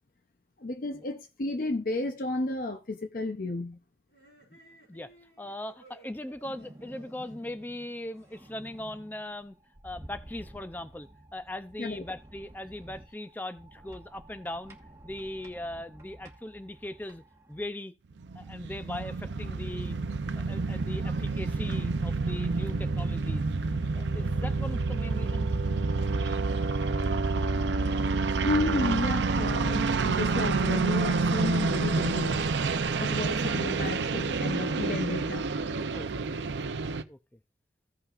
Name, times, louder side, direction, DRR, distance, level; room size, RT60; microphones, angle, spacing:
voice 1, 0.6-3.8 11.8-12.0 28.4-32.5 33.0-35.5, left 2 dB, 50° left, 0.6 m, -32 dB
sound 1, 4.1-8.7, right 2 dB, 65° left, 5.0 m, -58 dB
voice 2, 5.4-9.6 9.8-14.8 15.0-17.2 17.5-17.9 18.3-20.0 20.4-23.5 23.9-25.5 34.1-34.2 35.9-36.3 37.1-37.2, left 1 dB, 10° left, 0.5 m, -39 dB
sound 2, 6.4-17.7, right 1 dB, 15° right, 1.2 m, -51 dB
sound 3, 18.2-37.0, right 3 dB, 85° right, 0.6 m, -28 dB
15.5 x 5.6 x 2.4 m
head